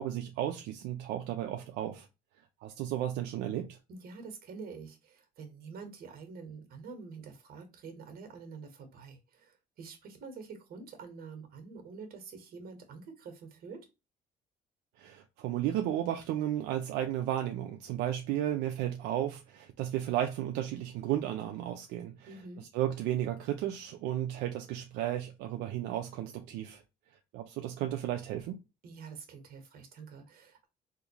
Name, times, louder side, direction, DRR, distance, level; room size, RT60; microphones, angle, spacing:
voice 1, 0.0-2.1 2.6-3.8 15.0-22.3 22.7-26.8 27.3-28.6, right 12 dB, 90° right, 0.5 m, -33 dB
voice 2, 3.9-13.9 22.3-22.6 28.8-30.7, right 5 dB, 60° right, 1.3 m, -47 dB
3.6 x 2.7 x 2.9 m
cardioid pair, 110°, 17 cm